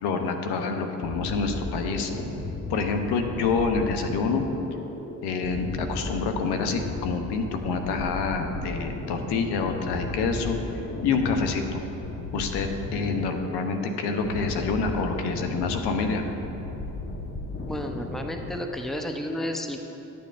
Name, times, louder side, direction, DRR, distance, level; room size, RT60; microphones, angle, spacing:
voice 1, 0.0-2.1 2.7-4.5 5.2-11.8 12.3-16.2, left 4 dB, 75° left, 5 dB, 0.8 m, -27 dB
sound 1, 1.0-18.6, left 2 dB, 30° left, 1.2 m, -35 dB
voice 2, 17.7-19.8, equal, ahead, 4 dB, 0.6 m, -32 dB
11.5 x 6.9 x 2.5 m, 3.0 s
supercardioid pair, 55°, 40 cm